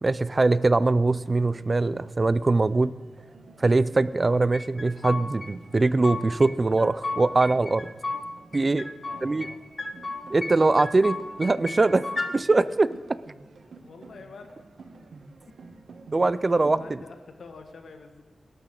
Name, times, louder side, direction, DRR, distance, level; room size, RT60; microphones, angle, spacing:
voice 1, 0.0-3.0 3.6-7.9 8.5-8.9 9.2-9.5 10.3-12.9 16.1-16.8, right 3 dB, 30° right, 17 dB, 0.4 m, -22 dB
sound 1, 0.9-16.9, right 4 dB, 70° right, 1.2 m, -51 dB
sound 2, 4.5-5.5 5.8-6.5 6.8-8.2 8.5-9.5 9.8-10.5 10.8-12.3, left 3 dB, 35° left, 1.2 m, -33 dB
voice 2, 9.0-9.6 13.8-14.7 15.6-15.7 16.7-18.2, left 4 dB, 80° left, 5 dB, 1.8 m, -46 dB
18.5 x 12.0 x 3.8 m, 1.4 s
wide cardioid pair, 175°, 0 cm